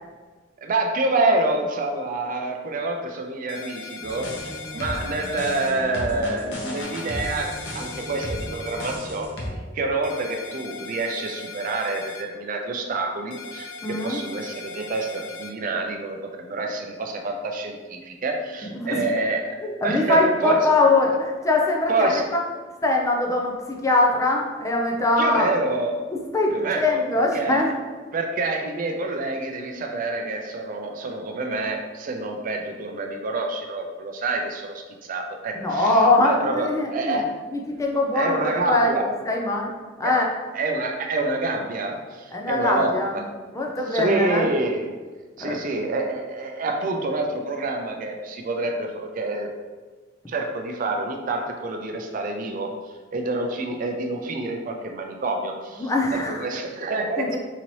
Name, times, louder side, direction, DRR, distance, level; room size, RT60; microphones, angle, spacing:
voice 1, 0.6-9.4 9.7-19.6 19.8-20.7 21.9-22.3 25.2-26.1 26.5-27.7 28.1-37.4 38.1-39.1 40.0-40.2 40.5-43.2 43.9-44.9 45.4-49.5 50.3-52.7 53.1-57.4, right 2 dB, 45° right, 3 dB, 0.4 m, -27 dB
sound 1, 3.5-5.7 6.8-9.0 10.0-12.2 13.3-15.5, left 4 dB, 85° left, 0.5 m, -39 dB
sound 2, 4.0-9.5, left 1 dB, 70° left, 0.9 m, -34 dB
voice 2, 13.8-14.2 18.7-19.0 19.6-22.4 22.8-25.5 26.3-27.7 35.6-37.2 37.5-39.0 39.3-39.7 40.0-40.3 42.3-43.1 43.5-44.5 45.4-45.6 55.8-56.4 57.2-57.4, left 2 dB, 15° left, 0 dB, 0.4 m, -22 dB
4.0 x 2.8 x 3.0 m, 1.4 s
head